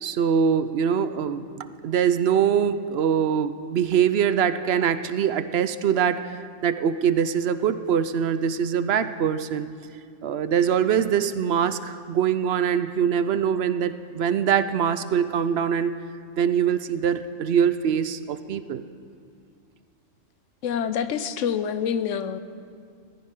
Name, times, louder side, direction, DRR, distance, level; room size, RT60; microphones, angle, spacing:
voice 1, 0.0-9.7 10.2-15.9 16.4-18.8, right 8 dB, 60° right, 12 dB, 0.8 m, -23 dB
voice 2, 20.6-22.4, left 8 dB, 70° left, 11 dB, 1.0 m, -26 dB
20.0 x 14.5 x 3.7 m, 2.3 s
omnidirectional pair, 1.4 m